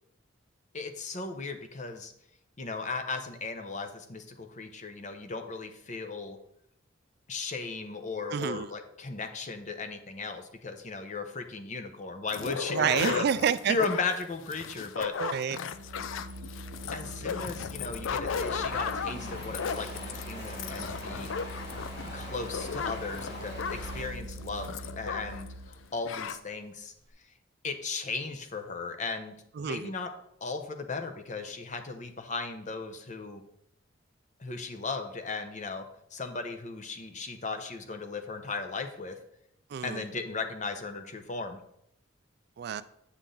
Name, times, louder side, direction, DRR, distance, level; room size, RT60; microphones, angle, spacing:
voice 1, 0.7-2.1 2.6-6.4 7.3-13.3 13.7-15.1 16.0-16.2 16.9-21.3 22.1-26.9 27.6-29.4 29.6-30.1 30.4-33.4 34.4-35.8 36.1-39.2 39.8-41.6, left 4 dB, 40° left, 7 dB, 0.7 m, -36 dB
voice 2, 8.3-8.7 12.7-13.8 15.2-15.6 29.6-29.9 39.7-40.1 42.6-42.8, right 7 dB, 55° right, 14 dB, 0.3 m, -28 dB
sound 1, 12.3-25.5 25.7-25.8 26.0-26.4, left 6 dB, 75° left, 0.4 m, -36 dB
Organ, 15.6-25.9, equal, 80° right, 1.0 m, -43 dB
Stream, 18.3-24.0, left 1 dB, 55° left, 2.6 m, -43 dB
8.1 x 5.9 x 3.8 m, 0.76 s
head